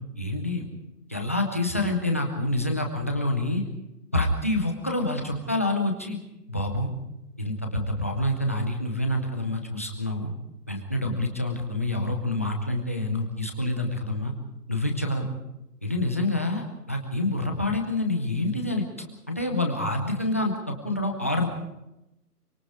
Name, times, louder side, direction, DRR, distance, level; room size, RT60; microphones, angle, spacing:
voice 1, 0.2-0.7 1.1-3.6 4.1-6.2 6.5-6.9 7.4-10.3 10.7-14.3 14.7-15.2 15.8-21.5, left 1 dB, 10° left, 2 dB, 0.6 m, -27 dB
24.5 x 22.0 x 4.9 m, 0.90 s
hypercardioid pair, 160°, 48 cm